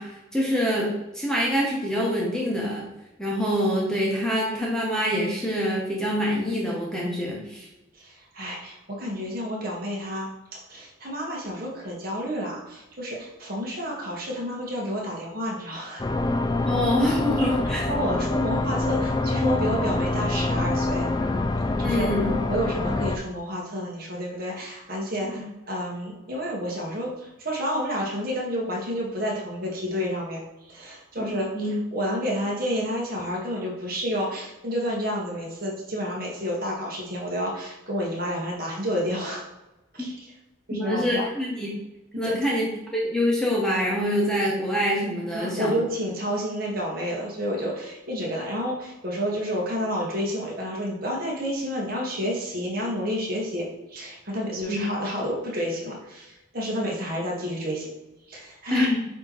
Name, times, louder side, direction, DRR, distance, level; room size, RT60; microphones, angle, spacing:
voice 1, 0.0-2.9 3.2-7.7 16.6-17.8 21.8-22.3 25.3-25.4 31.2-31.7 40.0-40.1 40.7-41.7 42.2-45.8 54.7-54.8 58.7-59.0, equal, 5° left, -4 dB, 1.2 m, -25 dB
voice 2, 7.9-16.0 17.4-21.1 21.8-22.1 22.5-30.4 30.7-39.4 39.9-40.3 40.7-41.2 42.2-42.4 45.3-57.9 58.3-58.9, equal, 45° right, -3 dB, 1.7 m, -30 dB
sound 1, 16.0-23.2, left 2 dB, 20° left, 0.3 m, -25 dB
8.9 x 3.1 x 4.1 m, 1.0 s
head